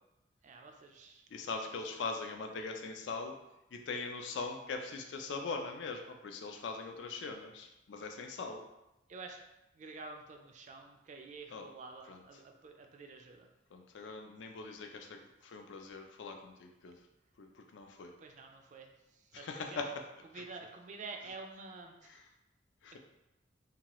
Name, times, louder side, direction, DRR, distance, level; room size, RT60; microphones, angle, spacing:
voice 1, 0.4-1.2 9.1-9.4 9.8-13.5 18.2-18.9 19.4-19.8 20.3-22.1 22.9-23.0, right 3 dB, 40° right, 4 dB, 0.3 m, -49 dB
voice 2, 1.3-3.3 3.7-8.6 11.5-11.7 12.1-12.2 13.7-16.9 17.4-18.1 19.3-19.9 20.3-20.4 22.0-22.3 22.8-23.0, left 4 dB, 75° left, 4 dB, 0.4 m, -41 dB
2.8 x 2.3 x 2.9 m, 0.94 s
head